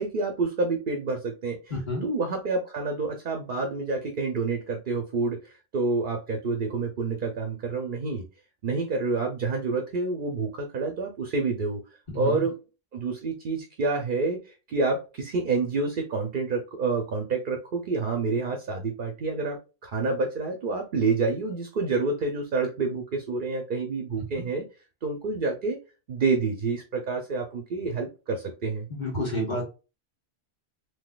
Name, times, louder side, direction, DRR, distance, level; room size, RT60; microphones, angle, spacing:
voice 1, 0.0-1.6 2.0-8.2 8.6-11.8 12.1-12.6 12.9-14.4 14.7-19.6 19.8-24.6 25.0-25.8 26.1-28.9, right 3 dB, 55° right, 4 dB, 0.8 m, -28 dB
voice 2, 1.7-2.0 12.1-12.4 28.9-29.6, equal, 45° left, -3 dB, 1.6 m, -29 dB
3.8 x 2.8 x 2.3 m, 0.30 s
omnidirectional pair, 1.1 m